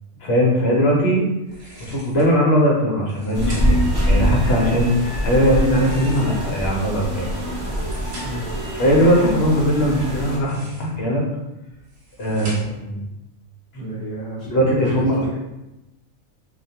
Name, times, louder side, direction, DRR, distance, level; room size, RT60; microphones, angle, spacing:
voice 1, 0.2-1.2 1.9-3.8 4.1-7.3 8.7-11.2 12.2-12.5 12.8-13.0 14.5-15.3, equal, 60° left, -2 dB, 0.8 m, -19 dB
sound 1, 1.5-2.4 2.9-3.9 5.5-6.6 7.4-8.5 10.2-11.1 11.7-12.9, right 1 dB, 60° right, 0.9 m, -42 dB
sound 2, 3.3-10.4, equal, 30° right, 0.7 m, -24 dB
voice 2, 12.3-12.7 13.7-15.3, right 1 dB, 30° left, -11 dB, 0.9 m, -32 dB
2.3 x 2.2 x 2.7 m, 0.94 s
omnidirectional pair, 1.3 m